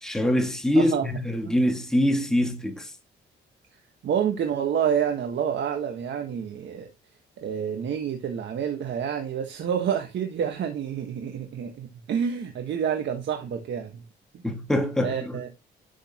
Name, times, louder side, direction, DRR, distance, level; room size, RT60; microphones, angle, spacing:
voice 1, 0.0-2.9 14.4-15.4, left 1 dB, 5° left, 1.9 m, -24 dB
voice 2, 0.7-1.1 1.4-1.5 4.0-6.9 7.4-14.0 15.0-15.5, right 8 dB, 65° right, 1.4 m, -28 dB
11.5 x 6.5 x 2.9 m
cardioid pair, 90°, 20 cm